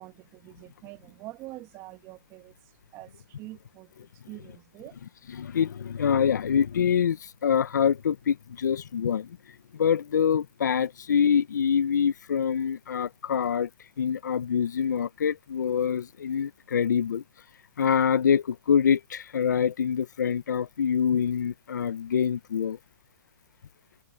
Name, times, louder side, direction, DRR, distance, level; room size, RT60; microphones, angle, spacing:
voice 1, 0.0-2.6 2.9-3.9 4.3-5.0, right 19 dB, 30° right, 1.8 m, -45 dB
voice 2, 5.4-9.3 9.8-13.7 14.0-17.2 17.8-22.8, left 7 dB, 80° left, 0.8 m, -25 dB
hypercardioid pair, 140°, 10 cm